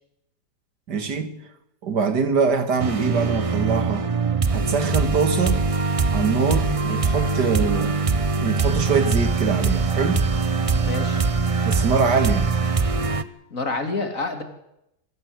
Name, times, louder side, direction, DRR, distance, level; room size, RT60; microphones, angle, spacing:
voice 1, 0.9-1.4 1.8-4.1 4.5-5.6 6.1-8.0 8.4-10.2 11.7-12.5, right 5 dB, 75° right, 2.5 m, -23 dB
sound 1, 2.8-13.2, right 4 dB, 30° right, 0.6 m, -22 dB
voice 2, 10.8-11.2 13.5-14.4, left 3 dB, 50° left, 3.1 m, -27 dB
24.5 x 15.5 x 8.0 m
omnidirectional pair, 1.8 m